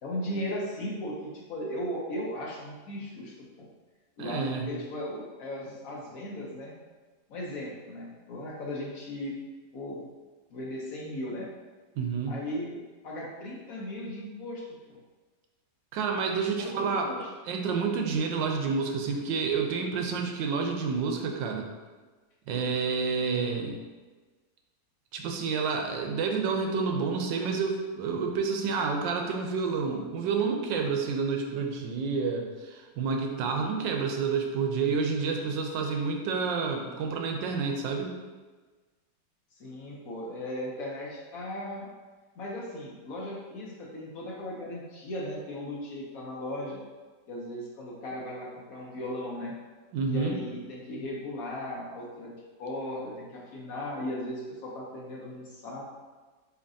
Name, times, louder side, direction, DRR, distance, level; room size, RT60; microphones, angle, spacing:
voice 1, 0.0-3.7 4.2-6.8 7.3-9.3 9.7-10.1 10.5-11.5 12.3-12.8 13.0-15.0 16.6-17.3 39.6-41.9 42.4-46.8 47.3-49.6 50.1-52.3 52.6-55.8, left 1 dB, 60° left, -3 dB, 1.1 m, -37 dB
voice 2, 4.2-4.7 12.0-12.4 15.9-17.1 17.4-21.7 22.5-23.8 25.1-38.1 49.9-50.4, right 5 dB, 85° right, 2 dB, 1.4 m, -29 dB
6.8 x 2.9 x 2.7 m, 1.3 s
omnidirectional pair, 1.9 m